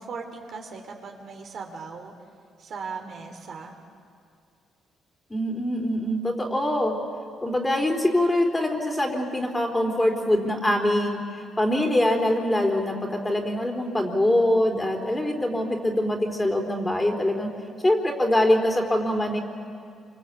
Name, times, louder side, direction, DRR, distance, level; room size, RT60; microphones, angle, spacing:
voice 1, 0.0-2.1 2.6-3.8, right 5 dB, 60° right, 2 dB, 3.6 m, -38 dB
voice 2, 5.3-7.0 7.4-11.2 11.6-12.9 13.2-17.5 17.8-19.4, left 1 dB, 15° left, 3 dB, 3.6 m, -23 dB
27.5 x 25.5 x 8.4 m, 2.3 s
cardioid pair, 105°, 0 cm